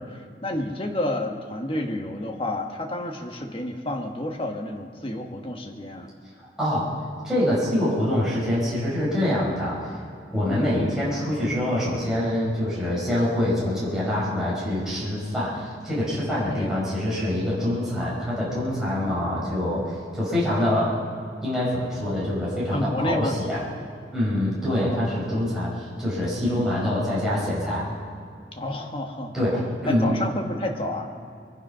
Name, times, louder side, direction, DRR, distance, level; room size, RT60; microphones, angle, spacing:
voice 1, 0.0-6.1 10.5-10.9 16.3-16.8 22.7-23.4 24.7-25.0 26.4-26.7 28.5-29.3 29.9-31.1, left 1 dB, 30° left, 3 dB, 1.4 m, -30 dB
voice 2, 6.6-6.9 7.2-9.9 10.3-21.0 21.4-23.6 24.1-27.9 29.3-30.1, left 1 dB, 5° right, -8 dB, 4.7 m, -25 dB
23.5 x 10.5 x 5.6 m, 2.3 s
head